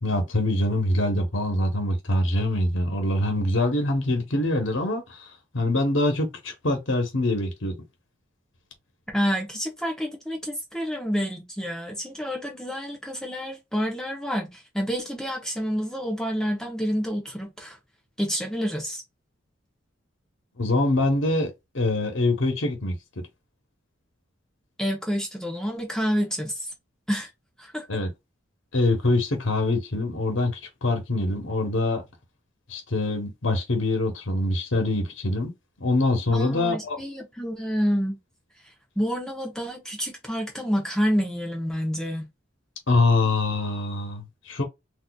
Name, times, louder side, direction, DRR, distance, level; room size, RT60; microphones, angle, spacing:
voice 1, 0.0-5.3 5.5-7.8 20.6-22.9 27.9-28.1 28.7-32.0 32.7-35.5 35.8-37.0 42.9-44.6, left 2 dB, 75° left, 1.1 m, -24 dB
voice 2, 9.1-17.8 18.2-19.0 24.8-26.7 27.1-27.3 27.6-27.9 36.3-38.2 39.0-42.3, equal, 5° left, 0.9 m, -28 dB
4.0 x 2.6 x 2.3 m
head